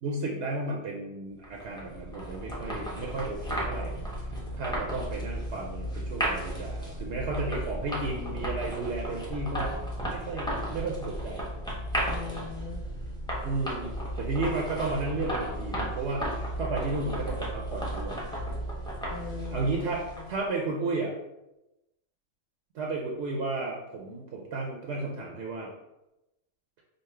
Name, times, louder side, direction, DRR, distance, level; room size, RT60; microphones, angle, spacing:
voice 1, 0.0-9.7 10.0-11.4 13.4-18.2 19.5-21.1 22.7-25.7, right 3 dB, 70° right, -1 dB, 0.9 m, -33 dB
sound 1, 1.4-20.5, equal, 5° left, 0.7 m, -34 dB
voice 2, 12.1-12.9 19.1-20.3, left 6 dB, 55° left, -2 dB, 0.4 m, -41 dB
5.4 x 2.0 x 3.2 m, 0.94 s
omnidirectional pair, 1.2 m